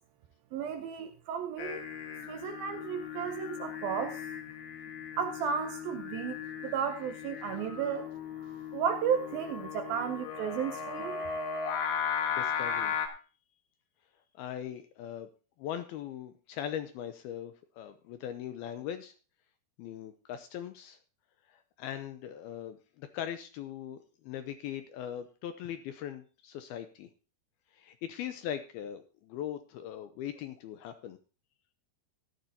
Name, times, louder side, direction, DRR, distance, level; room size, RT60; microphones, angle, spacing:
voice 1, 0.5-1.8 2.2-4.3 5.2-8.1 8.7-11.2, right 7 dB, 75° right, 7 dB, 2.3 m, -33 dB
Singing, 1.6-13.1, left 7 dB, 55° left, 2.5 m, -37 dB
voice 2, 12.3-13.0 14.3-15.3 15.6-19.1 19.8-21.0 21.5-24.0 24.2-27.1 27.7-31.2, left 10 dB, 80° left, 9 dB, 2.3 m, -40 dB
14.5 x 12.0 x 2.8 m, 0.35 s
omnidirectional pair, 5.1 m